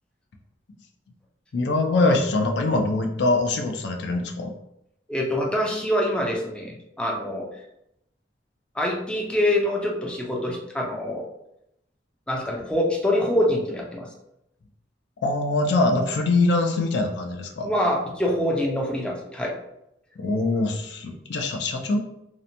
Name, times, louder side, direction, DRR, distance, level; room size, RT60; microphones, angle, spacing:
voice 1, 1.5-4.5 15.2-17.7 20.2-22.0, left 2 dB, 75° left, 3 dB, 0.4 m, -23 dB
voice 2, 5.1-7.5 8.8-11.3 12.3-14.1 17.6-19.5, left 1 dB, 5° left, -2 dB, 0.4 m, -25 dB
2.8 x 2.1 x 2.6 m, 0.81 s
head